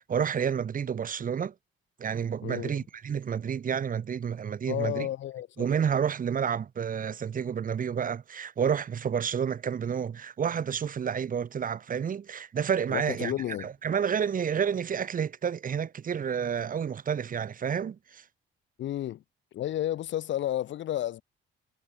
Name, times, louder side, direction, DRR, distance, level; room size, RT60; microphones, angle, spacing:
voice 1, 0.0-1.5 2.0-5.1 5.6-13.3 13.6-18.2, right 7 dB, 45° right, 1.1 m, -30 dB
voice 2, 2.4-2.7 4.7-5.7 12.9-13.7 18.8-19.2 19.5-21.2, left 12 dB, 70° left, 1.0 m, -31 dB
cardioid pair, 90°, 20 cm